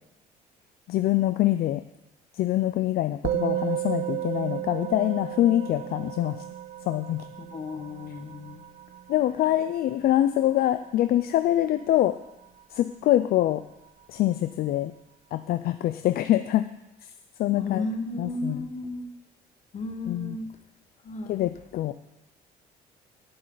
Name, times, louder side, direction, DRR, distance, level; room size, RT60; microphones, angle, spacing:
voice 1, 0.9-1.8 2.3-6.4 6.9-7.3 9.1-12.2 12.7-13.6 14.1-14.9 15.3-16.7 17.4-17.9 18.2-18.7 20.1-20.4 21.3-21.9, left 13 dB, 65° left, 11 dB, 0.5 m, -24 dB
Musical instrument, 3.2-12.8, right 13 dB, 40° right, 0.4 m, -34 dB
voice 2, 7.5-8.6 17.6-19.1 19.7-20.4 21.0-21.5, left 2 dB, 45° left, 6 dB, 1.6 m, -34 dB
17.5 x 7.7 x 4.0 m, 0.92 s
cardioid pair, 110°, 17 cm